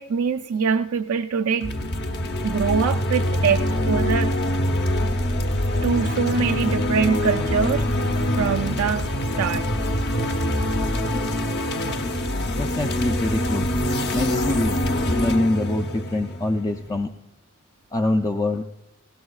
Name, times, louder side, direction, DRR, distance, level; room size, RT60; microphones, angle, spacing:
voice 1, 0.0-1.7 2.4-4.3 5.8-7.9 8.3-9.1 9.4-9.7, right 6 dB, 75° right, 5 dB, 0.4 m, -23 dB
sound 1, 1.6-17.0, left 1 dB, 55° left, 0.9 m, -24 dB
voice 2, 12.6-13.7 14.1-14.8 15.1-17.1 17.9-18.6, left 2 dB, 15° left, 4 dB, 0.4 m, -24 dB
19.0 x 16.5 x 2.4 m, 0.88 s
head